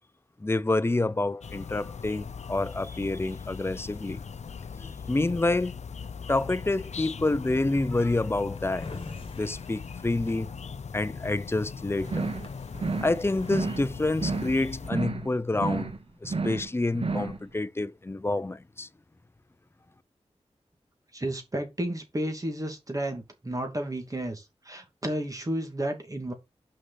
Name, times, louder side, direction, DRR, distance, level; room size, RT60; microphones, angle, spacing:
voice 1, 0.4-4.2 4.8-5.8 6.3-8.9 9.3-10.5 10.9-12.3 13.0-15.9 16.2-18.9, left 2 dB, 20° left, 0.6 m, -28 dB
sound 1, 1.4-14.9, left 6 dB, 80° left, 0.6 m, -40 dB
Drawer open or close, 8.6-11.1 11.6-11.7 11.8-13.6, left 3 dB, 50° left, 2.3 m, -46 dB
sound 2, 12.0-12.5 12.7-13.2 13.4-13.9 14.1-14.6 14.8-15.3 15.5-16.0 16.2-16.7 16.9-17.4, right 4 dB, 55° right, 1.3 m, -31 dB
voice 2, 21.1-26.3, right 1 dB, 30° right, 2.7 m, -32 dB
6.6 x 5.4 x 5.8 m
wide cardioid pair, 90°, 12 cm